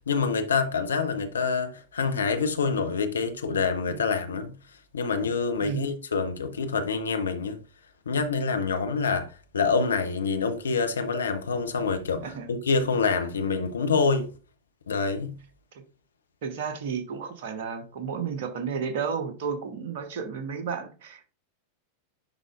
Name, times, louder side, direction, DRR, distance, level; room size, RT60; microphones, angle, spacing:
voice 1, 0.1-4.5 4.9-7.6 8.1-14.3 14.9-15.4, left 4 dB, 70° left, 0.8 m, -26 dB
voice 2, 16.4-21.3, right 6 dB, 55° right, 1.2 m, -32 dB
10.5 x 3.8 x 2.5 m
figure-of-eight pair, 90°, 0 cm